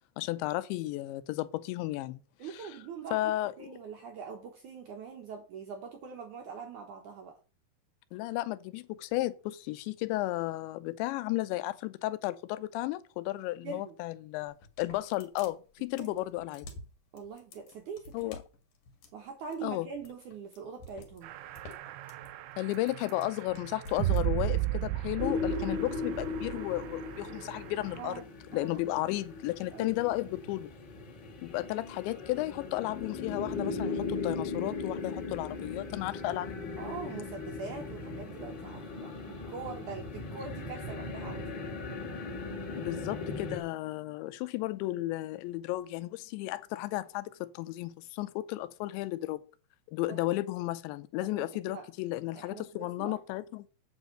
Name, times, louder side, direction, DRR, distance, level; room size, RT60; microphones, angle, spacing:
voice 1, 0.2-2.2 3.1-3.5 8.1-16.7 18.1-18.4 19.6-19.9 22.6-28.1 28.5-30.7 31.4-36.8 42.7-49.4 49.9-53.7, left 17 dB, 85° left, 3.0 m, -34 dB
voice 2, 2.4-7.4 13.6-14.0 15.9-16.2 17.1-18.3 19.1-21.3 27.9-28.8 29.7-30.0 36.8-41.5 50.1-50.2 51.2-51.9 52.4-53.2, right 5 dB, 70° right, 1.9 m, -43 dB
sound 1, 14.5-24.2, left 2 dB, 55° left, 3.0 m, -51 dB
sound 2, 21.2-28.2, right 16 dB, 90° right, 3.1 m, -35 dB
sound 3, 25.2-43.6, left 3 dB, 30° left, 2.2 m, -38 dB
8.3 x 5.4 x 7.8 m
omnidirectional pair, 5.2 m